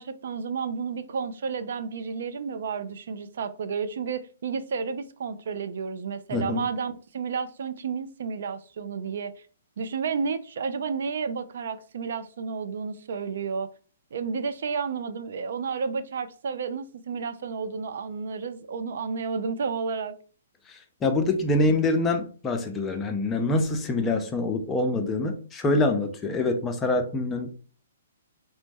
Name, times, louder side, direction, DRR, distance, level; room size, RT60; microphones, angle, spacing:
voice 1, 0.0-9.3 9.8-13.7 14.1-20.1, right 5 dB, 65° right, 0.3 m, -31 dB
voice 2, 6.3-6.6 20.7-27.5, left 2 dB, 15° left, 0.5 m, -25 dB
2.9 x 2.1 x 3.4 m
hypercardioid pair, 140°, 0 cm